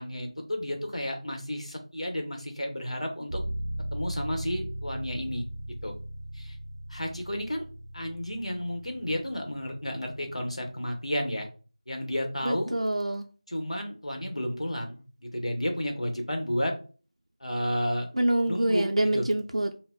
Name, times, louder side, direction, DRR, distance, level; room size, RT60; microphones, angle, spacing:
voice 1, 0.0-3.4 3.9-5.5 5.8-5.9 6.3-6.6 6.9-7.6 7.9-11.5 11.9-12.8 13.5-16.7 17.4-18.1 18.5-19.3, equal, 80° left, 2 dB, 0.9 m, -32 dB
sound 1, 3.3-11.0, right 1 dB, ahead, 0.5 m, -38 dB
voice 2, 12.4-13.3 18.2-19.7, right 1 dB, 75° right, 3 dB, 0.4 m, -26 dB
2.2 x 2.1 x 3.5 m, 0.36 s
figure-of-eight pair, 175°, 3 cm